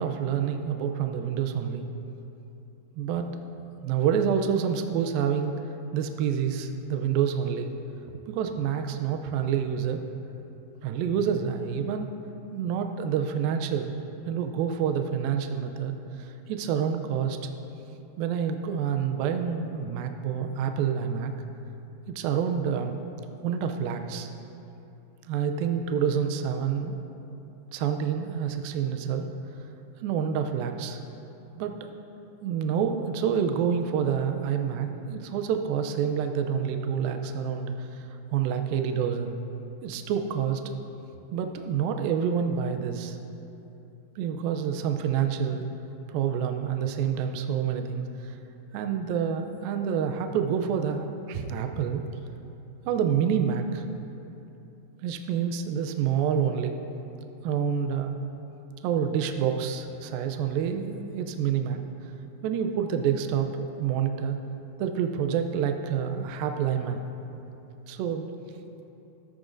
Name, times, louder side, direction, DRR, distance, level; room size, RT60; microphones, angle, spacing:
voice 1, 0.0-1.8 3.0-3.4 3.8-5.5 5.9-7.7 8.3-10.0 10.8-12.1 12.5-14.0 14.3-17.4 18.2-21.3 22.1-23.0 23.4-24.3 25.3-27.0 27.7-29.3 30.0-31.0 31.6-31.9 32.4-38.1 38.3-39.4 39.8-40.6 41.3-43.2 44.2-45.7 46.1-48.4 48.7-52.0 52.9-53.9 55.0-56.8 57.4-58.2 58.8-61.8 62.4-64.4 64.8-67.0 67.9-68.3, right 7 dB, 90° right, 6 dB, 2.0 m, -28 dB
14.5 x 13.5 x 2.6 m, 2.9 s
omnidirectional pair, 4.9 m